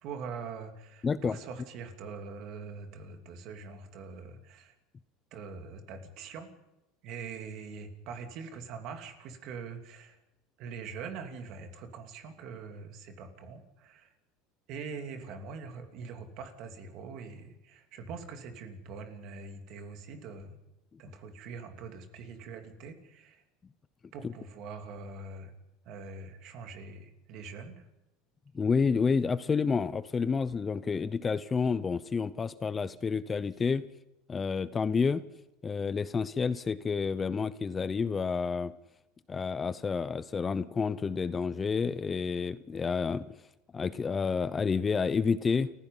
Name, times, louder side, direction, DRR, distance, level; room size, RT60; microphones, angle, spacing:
voice 1, 0.0-4.7 5.3-6.5 7.0-10.2 10.6-14.1 14.7-20.6 21.0-23.4 24.1-25.5 25.8-27.9, right 5 dB, 55° right, 5 dB, 2.9 m, -43 dB
voice 2, 1.0-1.4 24.2-24.3 28.5-33.8 34.3-35.2 35.6-38.7 39.3-43.2 43.7-45.7, left 5 dB, 20° left, 16 dB, 0.6 m, -29 dB
29.5 x 15.5 x 5.6 m, 0.96 s
supercardioid pair, 130°, 0 cm